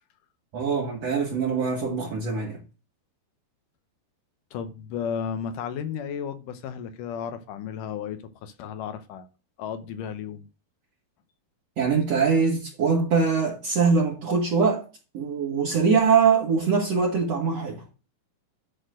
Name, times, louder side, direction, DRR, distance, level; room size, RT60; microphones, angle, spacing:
voice 1, 0.5-2.6 11.8-14.8 15.1-17.8, right 5 dB, 50° right, 2.5 m, -23 dB
voice 2, 4.5-9.3 9.6-10.5, left 7 dB, 75° left, 2.2 m, -33 dB
11.5 x 4.3 x 6.3 m
omnidirectional pair, 4.2 m